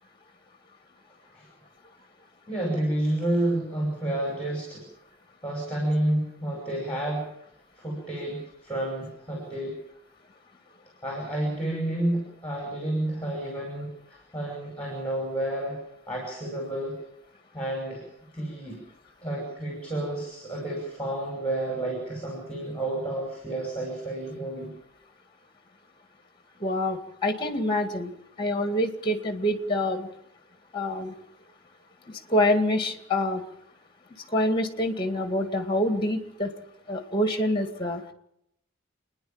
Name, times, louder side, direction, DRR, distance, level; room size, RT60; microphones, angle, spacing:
voice 1, 2.5-4.8 5.4-7.3 7.8-9.7 11.0-15.8 16.1-16.9 17.5-18.0 18.3-18.8 19.2-24.7, right 1 dB, 5° left, 0 dB, 5.7 m, -30 dB
voice 2, 26.6-28.1 28.4-30.1 30.7-31.1 32.3-33.4 34.3-36.5 36.9-38.0, left 1 dB, 25° left, 6 dB, 2.1 m, -26 dB
28.5 x 10.5 x 8.8 m, 0.79 s
head